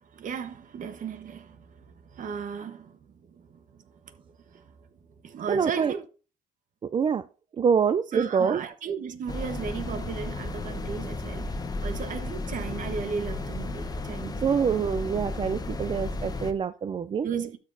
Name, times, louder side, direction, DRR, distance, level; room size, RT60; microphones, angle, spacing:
voice 1, 0.0-3.0 3.4-3.5 3.7-4.2 4.5-4.7 5.2-6.1 8.1-14.6 17.2-17.6, right 6 dB, 50° right, 1.1 m, -35 dB
voice 2, 5.5-5.9 6.8-7.2 7.6-8.6 14.4-17.3, right 6 dB, 30° right, 0.4 m, -25 dB
sound 1, 9.3-16.5, left 2 dB, 20° left, 0.9 m, -34 dB
12.0 x 6.5 x 2.6 m
cardioid pair, 110°, 17 cm